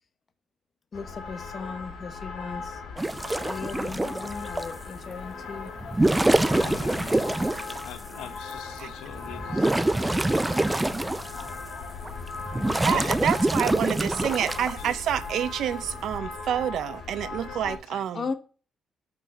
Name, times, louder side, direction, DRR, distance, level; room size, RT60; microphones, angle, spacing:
sound 1, 0.9-17.8, left 4 dB, 70° left, 1.5 m, -38 dB
voice 1, 0.9-2.8 3.5-5.8 6.2-6.5 12.6-12.8 18.1-18.3, left 5 dB, 40° left, 0.8 m, -37 dB
sound 2, 3.0-4.7 5.8-7.9 8.5-8.6 9.1-11.6 12.1-14.7 15.9-16.2, right 2 dB, 15° right, 0.3 m, -25 dB
voice 2, 6.5-10.4 12.8-13.2 14.2-15.2 17.5-18.1, left 10 dB, 90° left, 0.7 m, -42 dB
voice 3, 12.8-18.2, right 10 dB, 75° right, 0.4 m, -28 dB
5.3 x 4.0 x 5.8 m
cardioid pair, 90°, 0 cm